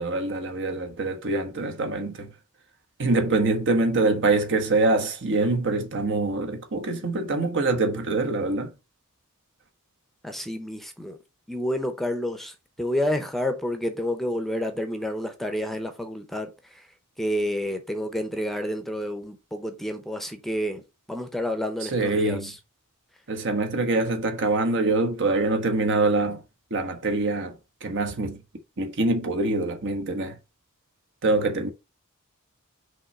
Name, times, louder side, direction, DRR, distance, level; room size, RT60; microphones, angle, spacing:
voice 1, 0.0-2.3 3.0-8.7 21.9-22.5 23.3-26.4 26.7-27.5 27.8-28.4 28.8-30.3 31.2-31.7, right 2 dB, 60° right, 1.2 m, -24 dB
voice 2, 10.2-11.2 11.5-16.8 17.2-20.8 21.1-22.6, equal, ahead, 0.8 m, -29 dB
5.7 x 3.2 x 5.3 m
head